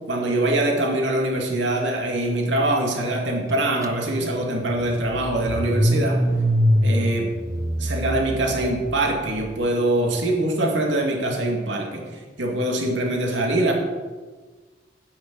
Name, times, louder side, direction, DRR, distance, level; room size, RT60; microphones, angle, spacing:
voice 1, 0.1-6.2 6.8-7.3 7.8-12.0 12.4-13.7, right 1 dB, 80° right, 0 dB, 2.4 m, -23 dB
Car / Engine starting, 3.8-3.9 4.2-9.5, equal, 20° right, 0.6 m, -24 dB
10.0 x 6.6 x 8.1 m, 1.4 s
head